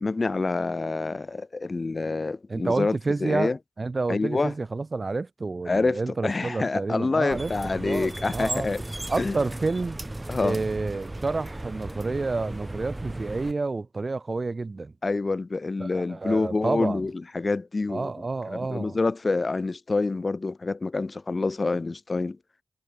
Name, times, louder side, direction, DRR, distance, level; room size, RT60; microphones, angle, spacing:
voice 1, 0.0-3.6 4.1-4.5 5.7-8.8 9.2-9.4 10.3-10.6 15.0-18.1 18.5-22.4, left 3 dB, 50° left, 0.5 m, -27 dB
voice 2, 2.5-3.5 3.8-8.7 9.1-10.0 10.4-14.9 15.8-17.1 17.9-19.0, right 3 dB, 50° right, 2.1 m, -29 dB
sound 1, 7.3-13.5, right 1 dB, 25° right, 1.1 m, -36 dB
wide cardioid pair, 65°, 0 cm